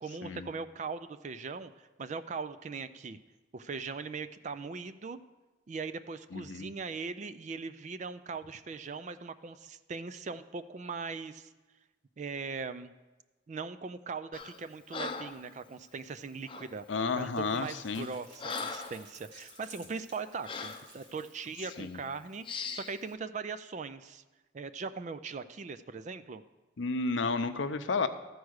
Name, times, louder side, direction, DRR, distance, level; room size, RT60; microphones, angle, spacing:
voice 1, 0.0-3.2 3.5-5.2 5.7-11.5 12.2-12.9 13.5-24.2 24.5-26.4, right 4 dB, 40° right, 12 dB, 0.4 m, -40 dB
voice 2, 6.3-6.7 16.9-18.1 21.8-22.0 26.8-28.1, left 4 dB, 75° left, 10 dB, 0.6 m, -32 dB
Breathing, 14.3-14.6 14.9-15.4 16.5-16.7 17.4-17.6 18.0-19.0 19.5-19.7 20.4-20.9 21.6-21.8 22.4-22.9, left 5 dB, 25° left, 0.6 m, -40 dB
sound 1, 17.2-21.8, right 2 dB, 75° right, 2.2 m, -53 dB
13.5 x 4.7 x 6.4 m, 1.2 s
head